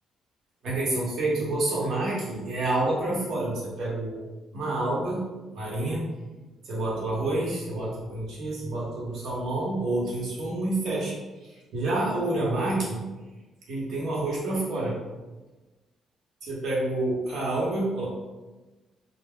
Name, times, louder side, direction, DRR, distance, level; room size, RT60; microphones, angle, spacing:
voice 1, 0.6-4.2 4.5-5.2 5.5-6.1 6.6-13.0 13.7-15.0 16.4-18.1, right 2 dB, 70° right, -5 dB, 0.9 m, -28 dB
3.4 x 2.1 x 2.2 m, 1.2 s
cardioid pair, 90°, 0 cm